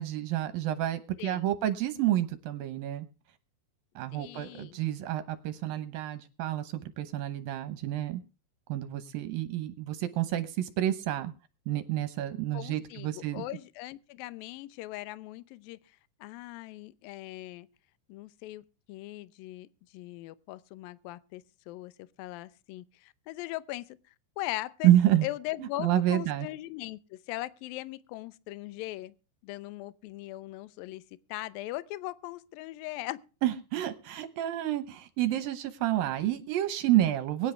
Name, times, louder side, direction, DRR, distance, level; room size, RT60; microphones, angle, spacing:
voice 1, 0.0-3.1 4.0-8.2 8.7-11.3 11.7-13.4 24.8-25.3 25.8-26.5 33.4-37.5, right 13 dB, 70° right, 2.3 m, -29 dB
voice 2, 1.2-1.6 4.1-4.8 12.5-17.7 18.1-21.9 22.2-24.0 24.4-24.9 25.2-29.1 29.4-31.0 31.3-33.2, left 17 dB, 80° left, 2.1 m, -40 dB
22.5 x 10.5 x 3.3 m
omnidirectional pair, 5.1 m